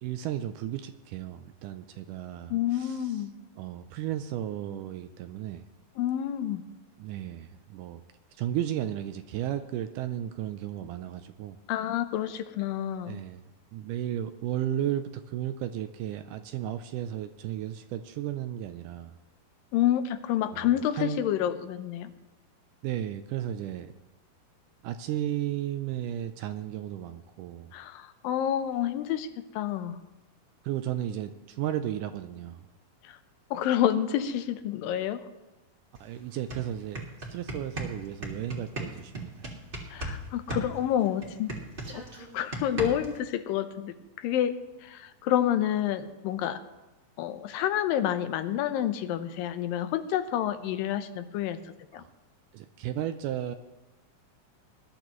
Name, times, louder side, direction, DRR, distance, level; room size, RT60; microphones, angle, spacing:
voice 1, 0.0-3.0 3.6-5.6 7.0-8.0 8.4-11.6 13.1-13.4 13.7-19.1 20.5-20.7 21.0-21.2 22.8-23.9 24.8-27.7 30.6-32.6 36.0-39.5 51.9-52.1 52.5-53.6, right 11 dB, 80° right, 9 dB, 1.9 m, -34 dB
voice 2, 2.5-3.3 6.0-6.6 11.7-13.2 19.7-22.1 27.7-30.0 33.0-33.2 33.5-35.3 39.9-41.6 41.9-44.6 44.8-46.6 47.2-51.6 51.9-52.0, left 11 dB, 85° left, 10 dB, 2.4 m, -29 dB
sound 1, 35.9-36.0 36.3-40.2 40.5-43.2, right 2 dB, 25° right, 1.4 m, -36 dB
20.0 x 11.5 x 3.1 m, 1.1 s
omnidirectional pair, 4.0 m